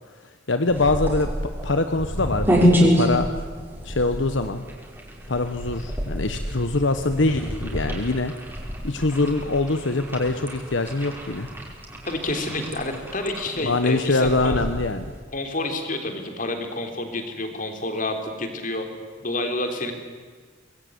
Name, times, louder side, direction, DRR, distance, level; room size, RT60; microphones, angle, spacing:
voice 1, 0.5-1.3 1.6-3.3 3.8-4.6 5.3-8.3 8.8-11.5 13.6-15.0, left 2 dB, 75° left, 8 dB, 1.2 m, -23 dB
sound 1, 0.7-15.2, equal, 10° right, 5.3 m, -27 dB
voice 2, 12.1-14.6 15.3-18.9 19.2-19.9, left 2 dB, 45° left, 5 dB, 3.6 m, -29 dB
25.0 x 21.0 x 9.6 m, 1.5 s
head